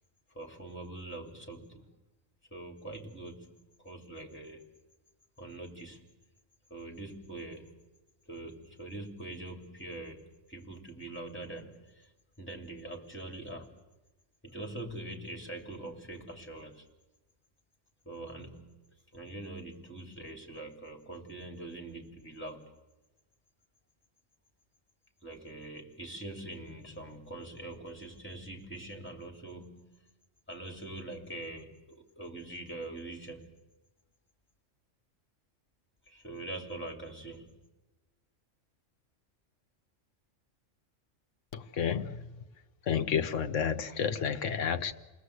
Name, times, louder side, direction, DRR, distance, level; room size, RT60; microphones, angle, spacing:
voice 1, 0.3-1.9 2.5-3.5 3.8-4.7 5.4-6.0 6.7-7.8 8.2-12.1 12.4-13.7 14.4-16.9 18.0-22.7 25.2-29.9 30.5-33.6 36.0-37.6, right 2 dB, 10° left, 3.0 m, -43 dB
voice 2, 41.5-42.4 42.9-44.9, left 7 dB, 70° left, 1.3 m, -31 dB
28.5 x 19.5 x 8.1 m
omnidirectional pair, 1.3 m